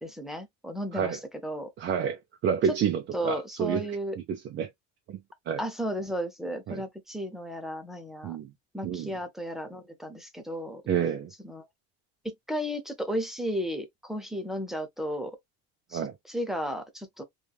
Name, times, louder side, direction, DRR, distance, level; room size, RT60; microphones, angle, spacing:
voice 1, 0.0-1.7 2.7-2.8 3.1-4.2 5.6-8.4 8.7-10.8 11.4-11.7 12.2-15.3 15.9-17.2, equal, ahead, 0.7 m, -34 dB
voice 2, 1.8-3.9 4.2-4.7 5.1-5.2 5.5-5.6 6.7-6.8 8.2-8.5 8.8-9.1 10.9-11.3 15.9-16.1, right 7 dB, 40° right, 0.4 m, -29 dB
3.1 x 2.4 x 2.3 m
cardioid pair, 130°, 31 cm